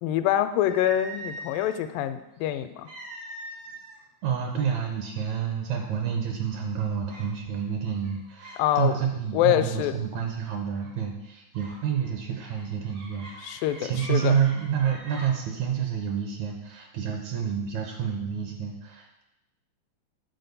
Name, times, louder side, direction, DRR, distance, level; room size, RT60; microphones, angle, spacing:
voice 1, 0.0-2.9 8.6-8.9 9.3-10.0 13.4-14.4, left 12 dB, 90° left, 10 dB, 2.3 m, -25 dB
sound 1, 0.6-1.8 2.8-4.0 4.3-4.6 5.3-5.4 5.8-6.3 7.1-7.3 7.9-8.6 8.9-9.3 10.7-11.0 11.5-15.3, right 2 dB, 90° right, 5.2 m, -43 dB
voice 2, 4.2-19.2, right 7 dB, 75° right, 3 dB, 1.8 m, -29 dB
8.2 x 4.4 x 6.8 m, 0.94 s
omnidirectional pair, 3.9 m